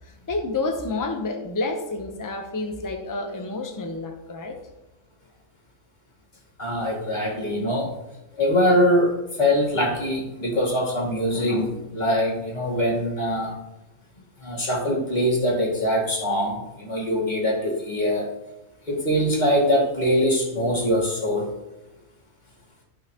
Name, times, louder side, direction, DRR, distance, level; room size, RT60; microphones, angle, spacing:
voice 1, 0.3-4.6, left 3 dB, 20° left, 5 dB, 0.8 m, -29 dB
voice 2, 6.6-7.9 8.4-13.6 14.4-18.3 18.8-21.5, equal, 35° left, -4 dB, 2.3 m, -23 dB
13.5 x 5.7 x 2.9 m, 0.94 s
omnidirectional pair, 1.4 m